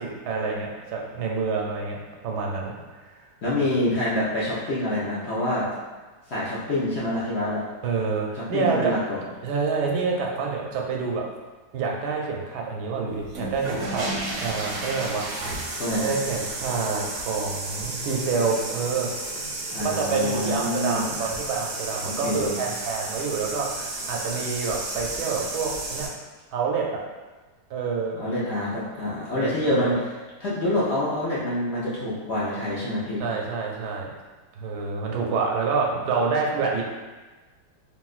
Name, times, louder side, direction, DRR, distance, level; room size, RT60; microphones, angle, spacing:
voice 1, 0.0-3.0 7.8-8.9 9.4-11.3 11.7-14.1 14.3-15.2 15.9-19.1 19.8-23.7 24.1-26.1 26.5-27.0 27.7-28.2 29.4-30.0 33.2-34.1 34.6-36.8, right 4 dB, 85° right, -1 dB, 1.1 m, -27 dB
voice 2, 3.4-5.7 6.3-7.6 8.4-9.2 15.8-16.1 19.7-21.3 22.0-22.5 28.1-30.1 30.4-33.2, left 1 dB, 60° left, -8 dB, 0.7 m, -26 dB
sound 1, 13.2-26.1, right 2 dB, 65° right, 0.9 m, -32 dB
3.5 x 2.4 x 2.4 m, 1.3 s
omnidirectional pair, 1.7 m